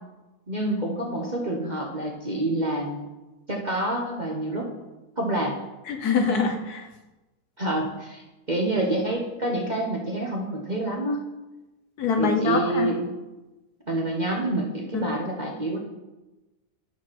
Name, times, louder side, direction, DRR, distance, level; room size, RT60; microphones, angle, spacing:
voice 1, 0.5-3.1 3.5-4.7 5.2-5.6 7.6-11.2 12.2-13.1 13.9-15.8, right 1 dB, 30° right, -1 dB, 1.0 m, -27 dB
voice 2, 5.9-6.9 12.0-12.9 14.9-15.1, left 5 dB, 65° left, 4 dB, 1.4 m, -24 dB
10.5 x 4.7 x 6.1 m, 1.1 s
omnidirectional pair, 1.9 m